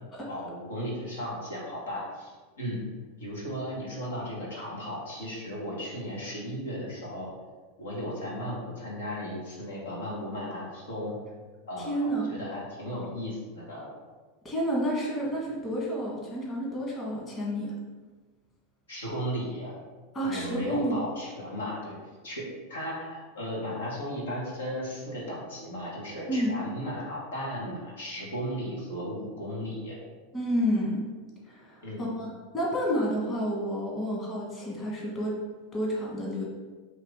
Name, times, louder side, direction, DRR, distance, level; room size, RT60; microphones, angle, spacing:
voice 1, 0.3-2.3 2.6-2.8 3.2-7.3 7.8-11.2 11.7-13.9 18.9-19.7 20.2-22.0 22.2-30.0 31.8-32.1, equal, 90° left, -4 dB, 1.4 m, -35 dB
voice 2, 11.8-12.3 14.4-17.7 20.1-21.0 26.3-26.5 30.3-31.0 31.4-35.3 35.7-36.4, equal, 25° left, -4 dB, 1.4 m, -30 dB
4.8 x 2.8 x 3.6 m, 1.3 s
hypercardioid pair, 105°, 0 cm